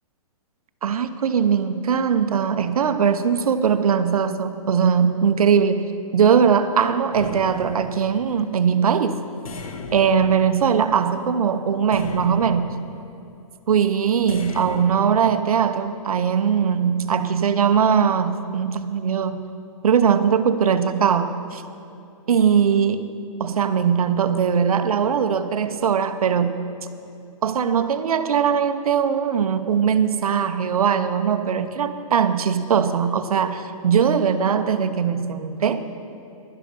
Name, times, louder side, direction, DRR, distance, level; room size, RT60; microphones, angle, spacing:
voice 1, 0.8-5.9 6.1-9.2 9.9-12.8 13.7-19.4 19.8-21.6 22.3-23.1 23.4-26.6 27.4-35.8, right 7 dB, 80° right, 11 dB, 0.8 m, -20 dB
sound 1, 7.1-8.4 9.5-11.1 11.9-13.1 14.3-15.1, left 4 dB, 70° left, 1.5 m, -37 dB
11.5 x 11.0 x 5.5 m, 2.6 s
hypercardioid pair, 145°, 18 cm